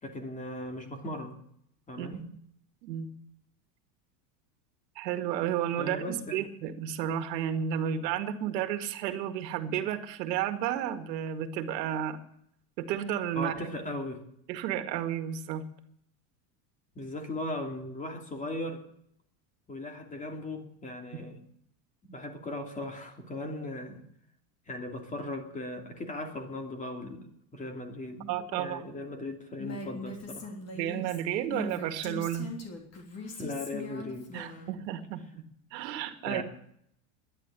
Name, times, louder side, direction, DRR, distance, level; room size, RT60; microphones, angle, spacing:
voice 1, 0.0-1.4 1.9-2.3 5.8-6.4 13.3-14.2 16.9-18.8 19.7-21.5 22.1-24.0 24.7-30.5 33.1-34.7 36.2-36.4, left 1 dB, 15° left, 4 dB, 2.8 m, -38 dB
voice 2, 2.0-2.3 2.8-3.1 5.0-12.2 12.8-13.7 14.5-15.7 21.1-21.2 28.3-28.9 30.7-32.5 34.3-35.4 35.7-36.4, right 10 dB, 85° right, 8 dB, 2.0 m, -32 dB
Female speech woman speaking, 29.6-34.7, left 3 dB, 30° left, 3.4 m, -40 dB
11.5 x 10.5 x 9.8 m, 0.69 s
supercardioid pair, 150°, 49 cm